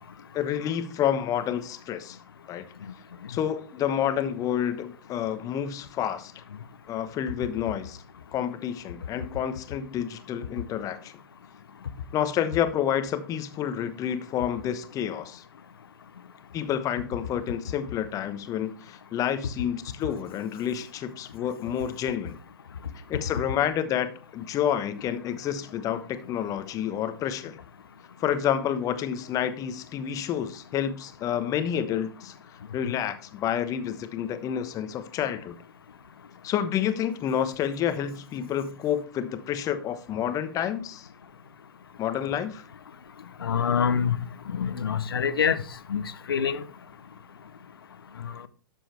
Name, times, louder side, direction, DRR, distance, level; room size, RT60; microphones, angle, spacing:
voice 1, 0.3-2.2 2.5-2.7 3.3-6.3 6.9-8.0 8.3-11.1 12.1-15.4 16.5-22.4 23.1-27.6 28.2-32.3 32.7-35.6 36.4-41.1 42.0-42.6, left 9 dB, 25° left, 1.1 m, -29 dB
voice 2, 43.4-44.1 44.5-45.6 45.9-46.6 48.2-48.5, left 7 dB, 70° left, 0.9 m, -26 dB
11.5 x 7.5 x 3.4 m
figure-of-eight pair, 105°, 13 cm